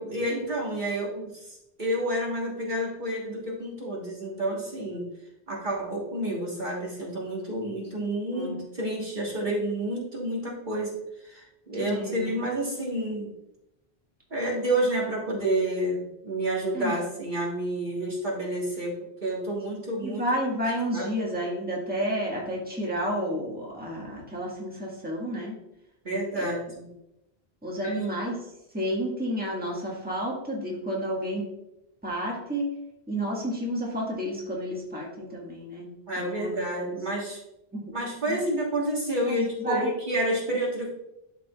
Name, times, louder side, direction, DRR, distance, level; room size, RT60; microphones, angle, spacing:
voice 1, 0.0-5.0 5.5-13.3 14.3-18.9 19.2-20.2 20.9-21.1 26.0-26.9 27.8-28.0 36.1-37.4 37.9-40.9, right 1 dB, 50° right, -4 dB, 1.6 m, -29 dB
voice 2, 11.8-12.4 16.7-16.9 20.0-25.5 26.4-26.6 27.6-28.3 28.7-31.4 32.0-32.7 33.1-35.9 36.2-36.9 37.7-37.9 38.3-38.4 39.2-39.9, equal, 10° right, -4 dB, 1.7 m, -31 dB
12.0 x 4.9 x 2.4 m, 0.87 s
omnidirectional pair, 1.1 m